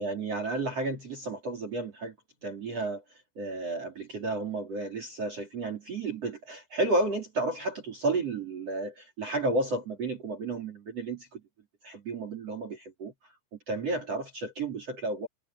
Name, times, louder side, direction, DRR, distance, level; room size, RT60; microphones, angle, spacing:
voice 1, 0.0-2.1 2.4-3.0 3.4-11.4 11.8-13.1 13.7-15.3, right 2 dB, 35° right, 3.9 m, -32 dB
omnidirectional pair, 5.9 m